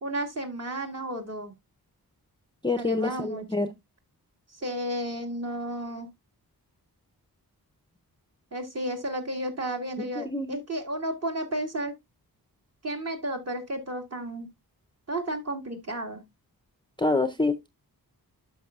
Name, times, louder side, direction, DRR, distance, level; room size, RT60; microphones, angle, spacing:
voice 1, 0.0-1.5 2.8-3.8 4.5-6.1 8.5-11.9 12.8-14.5 15.1-16.2, right 1 dB, 40° right, 2.1 m, -33 dB
voice 2, 2.6-3.7 10.2-10.6 17.0-17.7, left 3 dB, 10° left, 0.5 m, -26 dB
12.0 x 5.3 x 2.3 m
wide cardioid pair, 115°, 38 cm